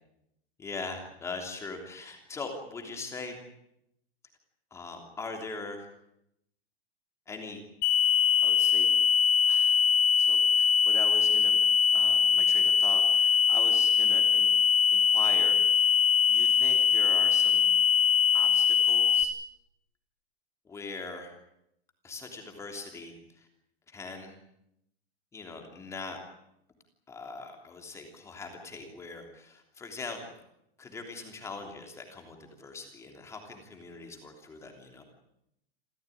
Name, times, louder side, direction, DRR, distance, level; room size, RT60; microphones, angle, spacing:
voice 1, 0.6-3.4 4.7-5.9 7.3-7.6 8.4-8.9 9.5-9.8 10.1-11.6 11.9-14.5 14.9-15.9 16.3-17.7 18.3-19.3 20.6-21.3 22.0-23.5 23.9-24.4 25.3-26.2 27.1-30.3 30.8-35.0, left 3 dB, 10° left, 3 dB, 3.2 m, -41 dB
sound 1, 7.8-19.2, left 7 dB, 25° left, 3.5 m, -22 dB
28.0 x 15.0 x 10.0 m, 0.81 s
supercardioid pair, 175°, 31 cm